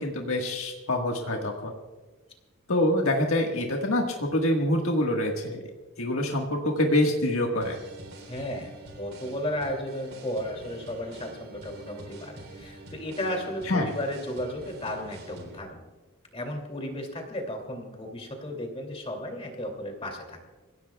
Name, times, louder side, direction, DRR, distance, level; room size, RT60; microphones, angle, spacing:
voice 1, 0.0-1.7 2.7-5.6 6.0-7.8 13.7-13.9, left 1 dB, 80° left, 1 dB, 1.6 m, -25 dB
sound 1, 7.6-15.6, right 2 dB, 90° right, 3.5 m, -46 dB
voice 2, 8.3-8.7 9.0-15.8 16.3-20.5, left 1 dB, 30° left, 3 dB, 2.6 m, -34 dB
27.5 x 16.5 x 2.3 m, 1.3 s
head